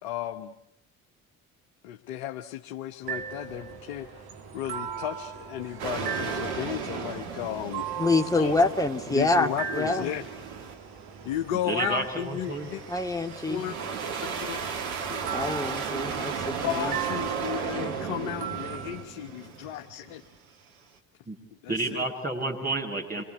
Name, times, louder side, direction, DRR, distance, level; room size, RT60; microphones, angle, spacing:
voice 1, 0.0-0.5 1.8-4.2 4.5-7.9 8.3-8.5 9.1-10.2 11.2-12.8 13.5-13.8 14.2-14.6 15.1-15.3 16.6-20.2 21.6-22.1 23.1-23.2, left 12 dB, 75° left, 5 dB, 1.4 m, -34 dB
sound 1, 3.0-19.0, right 7 dB, 60° right, 3.4 m, -39 dB
sound 2, 5.8-10.8 11.2-20.4, right 6 dB, 80° right, 2.3 m, -35 dB
voice 2, 8.0-10.1 12.9-13.7 15.3-16.9 17.8-17.9, left 2 dB, 10° left, 5 dB, 2.3 m, -26 dB
voice 3, 11.7-12.7 21.3-21.4 21.7-23.2, right 2 dB, 20° right, -1 dB, 7.4 m, -30 dB
28.0 x 23.0 x 8.3 m, 0.73 s
hypercardioid pair, 50°, 42 cm